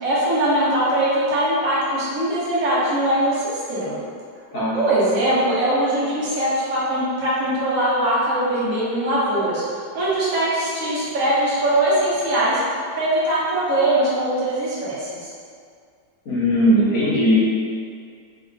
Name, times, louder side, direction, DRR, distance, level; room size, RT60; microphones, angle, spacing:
voice 1, 0.0-4.0 4.7-9.6 9.9-12.6 12.9-15.3, right 1 dB, 55° right, -9 dB, 1.2 m, -21 dB
voice 2, 4.5-4.8 16.2-17.4, equal, 55° left, -10 dB, 1.2 m, -18 dB
3.1 x 2.8 x 2.5 m, 2.2 s
omnidirectional pair, 1.9 m